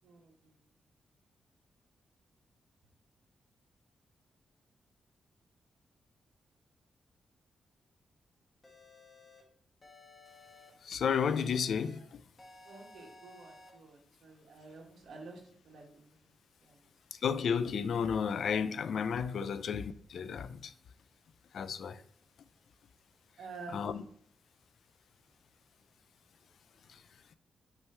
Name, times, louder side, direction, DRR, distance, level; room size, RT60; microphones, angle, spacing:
voice 1, 0.0-0.6 12.6-16.2 16.6-16.9 23.4-23.9, right 4 dB, 80° right, 1.6 m, -50 dB
sound 1, 8.6-9.4 9.8-10.7 11.1-12.0 12.4-13.7, left 2 dB, 25° left, 1.2 m, -56 dB
voice 2, 10.8-12.2 17.1-20.7 21.5-22.0 23.7-24.0 26.9-27.4, left 7 dB, 60° left, 0.3 m, -33 dB
6.1 x 3.1 x 5.6 m
wide cardioid pair, 170°, 0 cm